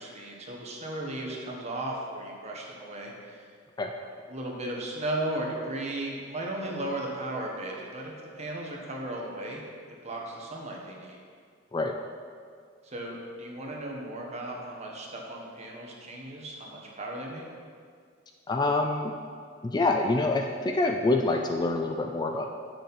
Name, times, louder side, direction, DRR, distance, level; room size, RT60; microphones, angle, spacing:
voice 1, 0.0-3.5 4.0-9.6 10.0-11.2 12.8-17.4, right 1 dB, 35° right, -2 dB, 1.3 m, -36 dB
voice 2, 18.5-19.2 19.6-22.5, left 2 dB, 20° left, 3 dB, 0.3 m, -26 dB
8.3 x 6.4 x 4.1 m, 2.1 s
head